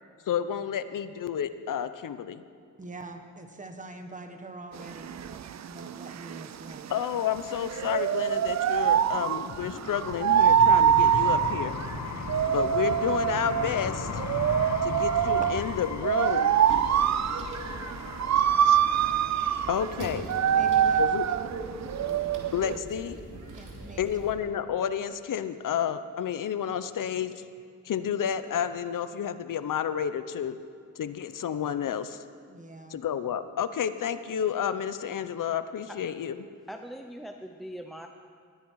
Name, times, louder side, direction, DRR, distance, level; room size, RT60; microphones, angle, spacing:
voice 1, 0.3-2.4 6.9-11.8 12.5-14.2 14.8-16.6 18.6-18.8 19.7-20.3 21.0-21.3 22.5-23.4 24.0-27.4 27.8-30.6 31.0-32.2 32.9-36.4, left 9 dB, 85° left, 12 dB, 0.8 m, -30 dB
voice 2, 2.8-6.9 20.5-21.0 21.3-21.5 23.5-24.2 32.5-33.0, right 2 dB, 25° right, 5 dB, 1.5 m, -44 dB
sound 1, 4.8-22.8, right 9 dB, 60° right, 0.5 m, -25 dB
sound 2, 8.8-19.7, left 5 dB, 60° left, 1.1 m, -37 dB
sound 3, 16.6-24.3, right 2 dB, 80° right, 2.6 m, -41 dB
voice 3, 36.7-38.1, equal, ahead, 5 dB, 0.6 m, -41 dB
20.5 x 14.5 x 4.7 m, 2.2 s
wide cardioid pair, 135°, 31 cm